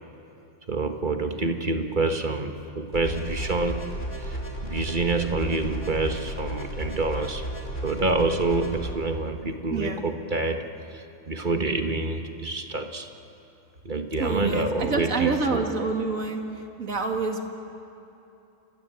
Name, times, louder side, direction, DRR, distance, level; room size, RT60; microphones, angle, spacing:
voice 1, 0.7-3.9 4.2-7.5 7.8-13.1 13.8-15.7, right 3 dB, 35° right, 5 dB, 1.5 m, -27 dB
sound 1, 2.9-8.9, right 1 dB, 55° left, 4.2 m, -34 dB
voice 2, 9.7-10.0 14.2-16.4 16.8-17.4, right 3 dB, 65° right, 3 dB, 2.5 m, -27 dB
28.5 x 21.5 x 7.9 m, 2.8 s
omnidirectional pair, 1.5 m